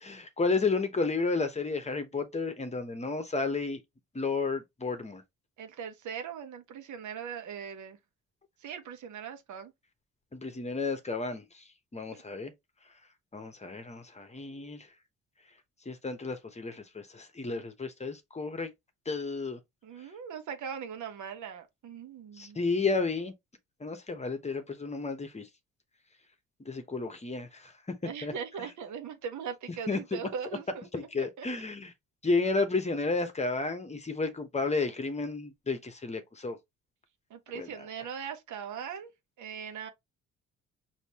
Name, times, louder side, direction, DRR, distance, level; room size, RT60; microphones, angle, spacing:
voice 1, 0.0-3.8 4.1-5.2 10.3-11.4 11.9-12.5 13.3-14.9 15.9-18.7 19.1-19.6 22.4-23.3 23.8-25.5 26.7-27.7 28.2-28.3 28.6-28.7 29.9-30.2 30.9-31.9 32.2-36.6 37.5-37.8, left 3 dB, 20° left, 1.0 m, -32 dB
voice 2, 5.6-8.0 8.6-9.7 19.8-22.6 28.0-30.9 31.2-31.5 37.3-39.1 39.4-39.9, right 7 dB, 75° right, 1.1 m, -40 dB
5.2 x 2.8 x 2.9 m
cardioid pair, 90°, 30 cm